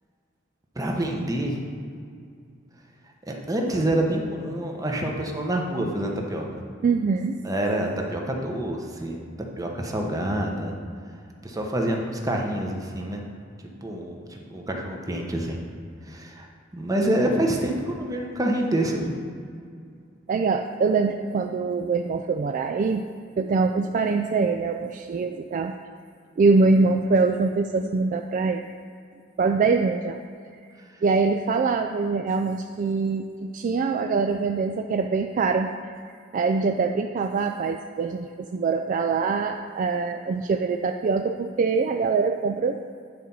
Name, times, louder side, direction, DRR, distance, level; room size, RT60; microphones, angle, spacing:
voice 1, 0.7-1.6 3.3-6.5 7.4-9.2 9.6-10.7 11.4-13.2 13.8-15.6 16.1-16.5 16.7-19.2, right 1 dB, 20° right, 1 dB, 0.9 m, -27 dB
voice 2, 6.8-7.4 20.3-23.0 23.4-25.7 26.4-28.6 29.4-30.2 31.0-35.7 36.1-42.8, right 4 dB, 45° right, 5 dB, 0.3 m, -24 dB
9.7 x 4.2 x 5.5 m, 2.3 s
head